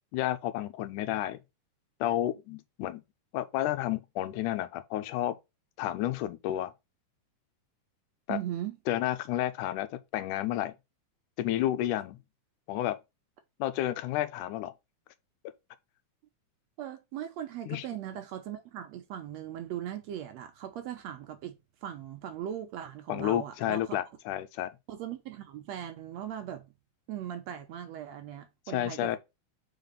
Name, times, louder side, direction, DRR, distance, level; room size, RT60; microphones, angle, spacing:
voice 1, 0.1-1.4 2.0-3.0 3.3-5.4 5.8-6.7 8.3-8.4 8.9-10.7 11.4-12.2 12.7-13.0 13.6-14.7 17.7-17.9 23.1-24.7 28.7-29.2, left 13 dB, 90° left, 2.2 m, -31 dB
voice 2, 8.3-8.8 16.8-21.6 21.8-24.0 24.9-26.7 27.1-29.2, right 10 dB, 70° right, 1.8 m, -39 dB
5.0 x 4.0 x 5.2 m
omnidirectional pair, 3.6 m